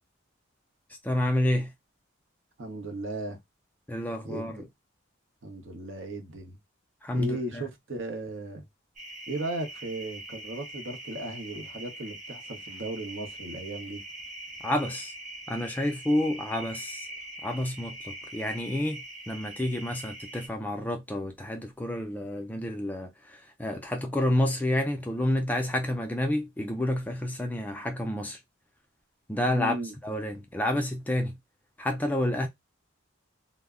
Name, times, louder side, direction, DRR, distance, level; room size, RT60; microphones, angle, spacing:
voice 1, 1.0-1.7 3.9-4.7 7.0-7.7 14.6-15.1 15.5-17.1 17.4-28.4 29.3-29.8 30.0-31.4 31.8-32.5, left 1 dB, 10° left, 0.3 m, -29 dB
voice 2, 2.6-3.4 4.2-4.5 5.4-6.6 7.1-8.6 9.3-14.0 29.5-29.9, right 2 dB, 70° right, 0.8 m, -36 dB
sound 1, 9.0-20.5, right 1 dB, 35° right, 0.8 m, -43 dB
2.1 x 2.0 x 3.5 m
head